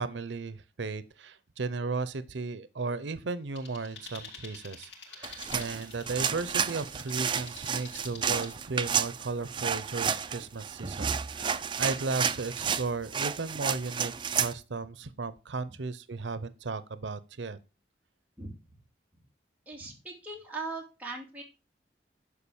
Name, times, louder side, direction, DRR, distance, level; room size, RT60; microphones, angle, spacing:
voice 1, 0.0-17.6, right 4 dB, 85° right, 0.7 m, -35 dB
sound 1, 3.6-8.5, left 5 dB, 80° left, 4.6 m, -48 dB
sound 2, 5.2-14.5, right 7 dB, 25° right, 0.5 m, -31 dB
voice 2, 18.4-18.7 19.7-21.4, right 3 dB, 10° right, 3.1 m, -40 dB
11.5 x 4.9 x 7.0 m
head